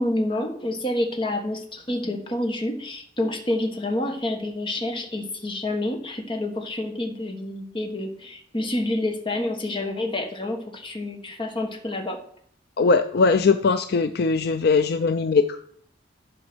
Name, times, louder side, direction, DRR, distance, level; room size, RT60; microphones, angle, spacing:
voice 1, 0.0-12.2, left 1 dB, 25° left, 3 dB, 1.4 m, -28 dB
voice 2, 12.8-15.6, left 4 dB, 55° left, 9 dB, 0.4 m, -20 dB
11.5 x 5.1 x 6.1 m, 0.63 s
head